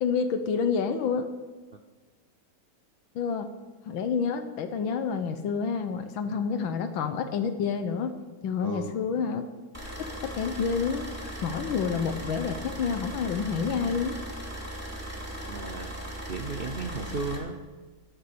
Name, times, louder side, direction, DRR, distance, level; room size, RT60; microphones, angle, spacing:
voice 1, 0.0-1.3 3.2-3.5 3.9-8.2 8.4-9.5 10.0-11.1 11.4-14.2, left 6 dB, 75° left, 8 dB, 1.7 m, -28 dB
voice 2, 8.6-9.0 15.5-15.9 16.3-17.5, right 4 dB, 55° right, 6 dB, 0.6 m, -34 dB
sound 1, 9.7-17.4, right 1 dB, 5° right, 2.5 m, -38 dB
13.0 x 11.5 x 6.9 m, 1.3 s
omnidirectional pair, 2.2 m